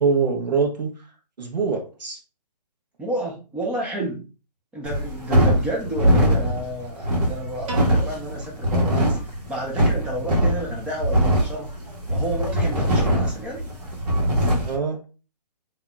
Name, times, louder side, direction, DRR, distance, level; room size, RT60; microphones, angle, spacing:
voice 1, 0.0-0.9 1.4-2.2 14.7-15.0, right 5 dB, 85° right, 2 dB, 1.1 m, -23 dB
voice 2, 3.0-4.3 4.7-9.2 9.5-11.8 12.1-13.6, right 1 dB, 5° right, -1 dB, 0.4 m, -30 dB
sound 1, 4.8-14.8, equal, 65° right, 1.4 m, -22 dB
Piano, 7.7-9.9, right 3 dB, 50° right, 1.3 m, -40 dB
3.7 x 2.8 x 2.2 m, 0.33 s
hypercardioid pair, 145°, 21 cm